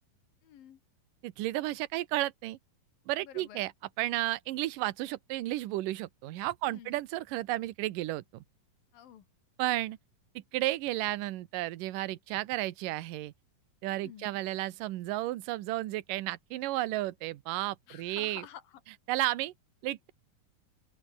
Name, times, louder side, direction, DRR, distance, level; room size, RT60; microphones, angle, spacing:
voice 1, 0.4-0.8 3.2-3.6 6.6-7.0 8.9-9.3 13.9-14.4 17.9-18.8, left 10 dB, 75° left, 3.6 m, -50 dB
voice 2, 1.2-2.6 3.1-3.7 4.0-8.4 9.6-10.0 10.4-13.3 13.8-18.5 19.1-19.5 19.8-20.1, right 16 dB, 75° right, 2.5 m, -33 dB
open air
omnidirectional pair, 4.2 m